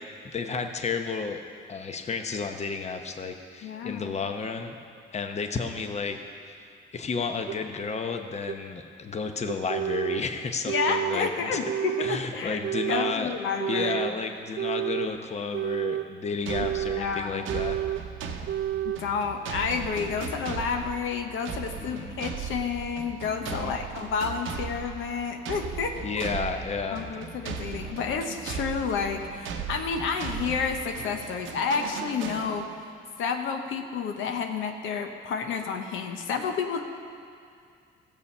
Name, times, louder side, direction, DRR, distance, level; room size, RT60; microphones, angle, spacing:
voice 1, 0.3-1.4 1.7-4.7 5.1-6.2 6.5-11.6 12.0-13.3 13.7-17.8 21.8-22.2 23.4-23.8 26.0-27.0, left 5 dB, 35° left, 5 dB, 0.9 m, -32 dB
voice 2, 3.6-4.1 10.6-12.6 12.9-14.0 17.0-17.4 18.8-26.3 26.9-32.7 33.2-36.8, left 5 dB, 85° left, 4 dB, 1.0 m, -30 dB
sound 1, 7.5-7.6 8.5-8.6 9.5-10.2 10.7-11.2 11.7-12.2 12.6-13.2 13.6-14.2 14.6-15.1 15.5-16.1 16.5-17.1 17.5-18.0 18.5-19.0, right 12 dB, 55° right, 0.4 m, -30 dB
sound 2, 16.5-32.9, right 6 dB, 90° right, 0.9 m, -37 dB
15.0 x 7.1 x 5.5 m, 2.3 s
cardioid pair, 90°, 20 cm